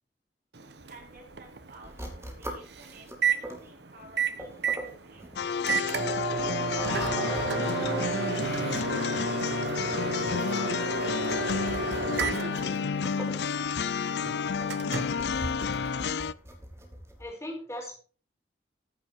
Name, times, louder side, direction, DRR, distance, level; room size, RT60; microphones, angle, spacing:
Microwave oven, 0.5-16.2, right 4 dB, 70° right, 1.1 m, -33 dB
voice 1, 0.9-2.0 2.3-4.8 5.0-7.1 8.3-8.5 8.8-9.9, right 2 dB, 50° right, -1 dB, 5.1 m, -53 dB
sound 1, 1.8-17.2, equal, 15° right, 2.7 m, -45 dB
sound 2, 5.4-16.3, left 6 dB, 70° left, 0.5 m, -31 dB
voice 2, 6.7-8.4 17.2-18.0, equal, 15° left, 0 dB, 4.6 m, -37 dB
14.5 x 8.1 x 4.7 m, 0.40 s
head